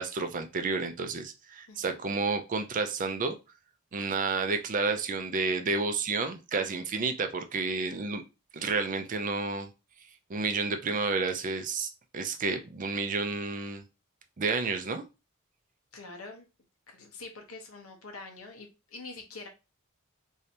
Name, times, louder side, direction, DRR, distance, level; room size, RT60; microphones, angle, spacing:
voice 1, 0.0-3.3 3.9-8.2 8.5-9.7 10.3-13.8 14.4-15.0, right 4 dB, 40° right, 7 dB, 0.4 m, -30 dB
voice 2, 1.7-2.0 15.9-16.5 16.9-19.5, left 3 dB, 75° left, 3 dB, 0.9 m, -45 dB
3.2 x 2.7 x 2.7 m, 0.27 s
head